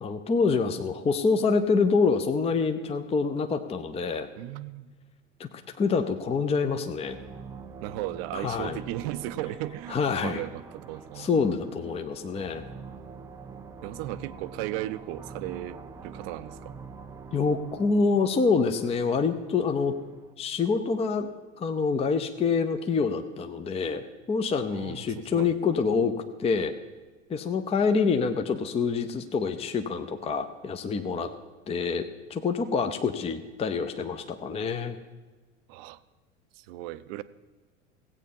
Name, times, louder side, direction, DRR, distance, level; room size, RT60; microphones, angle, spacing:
voice 1, 0.0-4.3 5.4-5.5 5.8-7.2 8.3-8.8 9.9-10.4 11.2-12.6 17.3-20.0 20.4-21.3 21.6-26.1 26.4-26.7 27.3-31.3 31.7-32.0 32.3-35.0, left 5 dB, 15° left, 7 dB, 0.7 m, -26 dB
voice 2, 4.4-4.9 7.8-11.5 13.8-16.8 24.7-25.5 35.7-36.0 36.5-37.2, right 15 dB, 50° right, 14 dB, 0.7 m, -36 dB
sound 1, 7.0-20.3, right 5 dB, 10° right, 0.3 m, -45 dB
16.5 x 8.3 x 5.4 m, 1.3 s
figure-of-eight pair, 80°, 39 cm